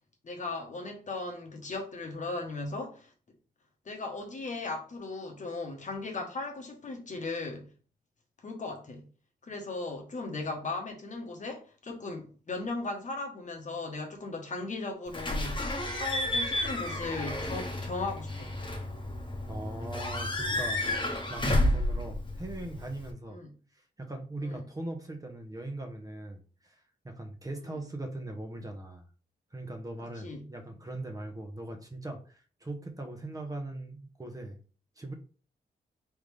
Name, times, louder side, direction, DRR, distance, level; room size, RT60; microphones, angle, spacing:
voice 1, 0.2-3.1 3.8-7.7 8.4-9.1 9.4-18.5 23.3-23.5 24.4-24.7 27.7-27.8 30.2-30.5, left 3 dB, 50° left, 1.2 m, -37 dB
Slam / Squeak / Alarm, 15.1-23.1, left 1 dB, 30° left, 1.2 m, -31 dB
voice 2, 19.5-23.4 23.7-26.7 27.0-29.0 29.5-34.6 35.0-35.1, right 2 dB, 20° right, 1.0 m, -40 dB
3.8 x 3.5 x 3.3 m
wide cardioid pair, 100°, 16 cm